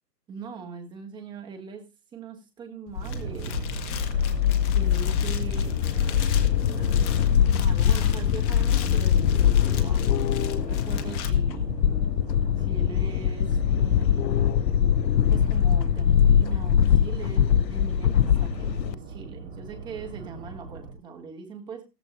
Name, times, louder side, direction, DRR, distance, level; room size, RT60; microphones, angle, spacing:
voice 1, 0.3-3.5 4.7-11.7 12.6-14.5 15.3-21.8, right 5 dB, 10° right, 5 dB, 1.3 m, -41 dB
sound 1, 2.9-11.3, left 9 dB, 20° left, 1.4 m, -41 dB
sound 2, 3.0-18.9, left 9 dB, 80° left, 0.6 m, -22 dB
sound 3, 3.0-20.9, right 4 dB, 25° right, 3.7 m, -38 dB
16.0 x 14.0 x 2.5 m, 0.30 s
hypercardioid pair, 145°, 49 cm